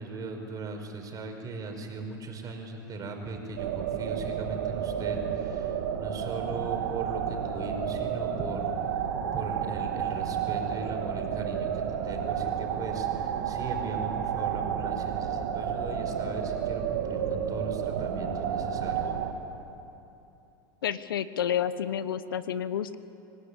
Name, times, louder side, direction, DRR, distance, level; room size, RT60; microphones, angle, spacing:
voice 1, 0.0-8.7 9.3-19.1, right 3 dB, 30° right, 4 dB, 5.1 m, -38 dB
sound 1, 3.6-19.3, right 8 dB, 70° right, 2.3 m, -31 dB
voice 2, 20.8-23.0, left 9 dB, 80° left, 14 dB, 1.0 m, -30 dB
25.5 x 18.5 x 9.9 m, 2.8 s
hypercardioid pair, 100°, 11 cm